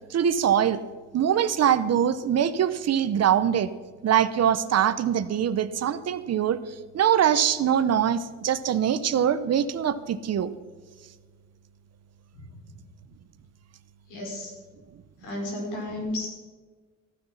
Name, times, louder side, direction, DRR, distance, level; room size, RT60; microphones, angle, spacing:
voice 1, 0.1-0.8 1.1-3.7 4.0-10.5, right 9 dB, 55° right, 14 dB, 0.9 m, -23 dB
voice 2, 14.1-14.5 15.2-16.3, left 1 dB, 90° left, -1 dB, 4.9 m, -32 dB
15.0 x 9.7 x 5.8 m, 1.5 s
cardioid pair, 90°, 30 cm